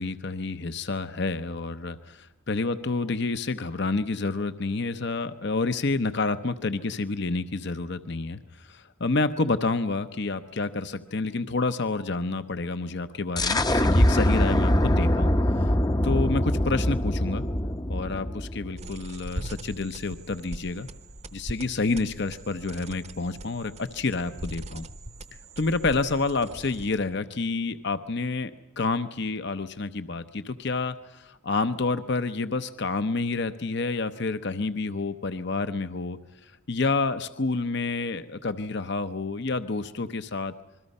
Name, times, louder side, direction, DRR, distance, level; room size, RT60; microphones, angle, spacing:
voice 1, 0.0-15.3 16.0-17.4 17.9-20.9 21.3-24.9 25.6-28.5 28.8-36.2 36.7-40.5, left 3 dB, 50° left, 11 dB, 0.8 m, -29 dB
sound 1, 13.4-18.9, left 1 dB, 20° left, 0.7 m, -23 dB
sound 2, 18.8-27.2, right 1 dB, 30° right, 0.9 m, -41 dB
27.0 x 22.0 x 5.4 m, 1.0 s
head